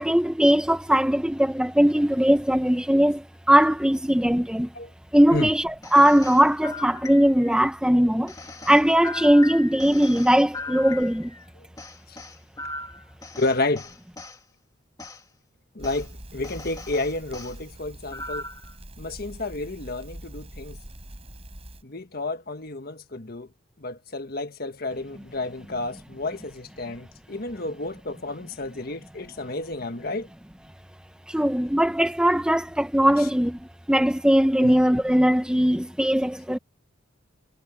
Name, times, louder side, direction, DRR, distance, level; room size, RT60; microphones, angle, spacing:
voice 1, 0.0-4.7 5.1-8.3 8.7-11.3 31.3-33.6 33.9-36.6, equal, 5° right, 0.7 m, -20 dB
sound 1, 5.8-7.6 8.3-11.4 11.8-14.4 15.0-15.2 15.8-16.0 16.4-17.5 18.1-18.7, left 3 dB, 20° left, 2.3 m, -38 dB
voice 2, 13.4-13.9 15.7-18.5 19.0-20.8 21.8-23.5 23.8-30.3 33.2-33.3 34.6-34.7, left 2 dB, 45° left, 1.5 m, -31 dB
Crackle, 15.8-21.8, right 1 dB, 30° right, 5.2 m, -43 dB
head